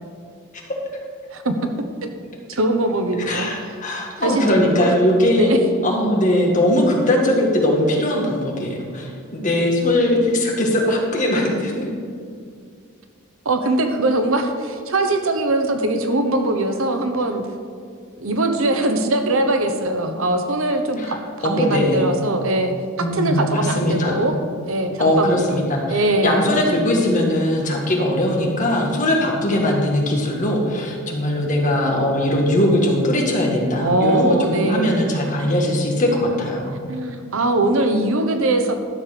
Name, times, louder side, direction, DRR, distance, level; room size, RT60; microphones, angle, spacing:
voice 1, 2.5-3.8 4.2-4.9 5.4-5.6 13.4-17.4 18.2-21.2 21.6-24.4 24.7-26.5 33.8-35.0 36.9-38.7, right 2 dB, 70° right, 6 dB, 0.9 m, -21 dB
voice 2, 3.3-5.5 5.8-11.9 21.0-21.1 21.4-22.1 23.0-24.2 25.0-36.8, left 1 dB, 35° left, -1 dB, 1.7 m, -20 dB
12.5 x 6.7 x 5.0 m, 2.2 s
head